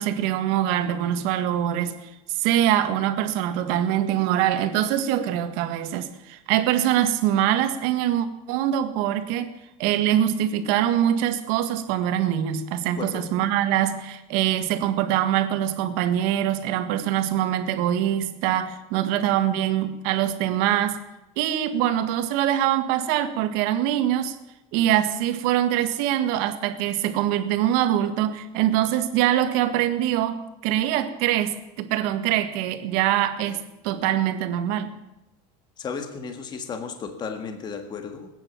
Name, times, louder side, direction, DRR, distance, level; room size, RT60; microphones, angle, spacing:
voice 1, 0.0-2.1 2.4-9.5 9.8-21.0 21.4-24.3 24.7-34.9, right 11 dB, 60° right, 9 dB, 1.7 m, -23 dB
voice 2, 35.8-38.3, left 5 dB, 25° left, 6 dB, 1.7 m, -34 dB
20.5 x 9.8 x 7.2 m, 0.95 s
cardioid pair, 165°, 17 cm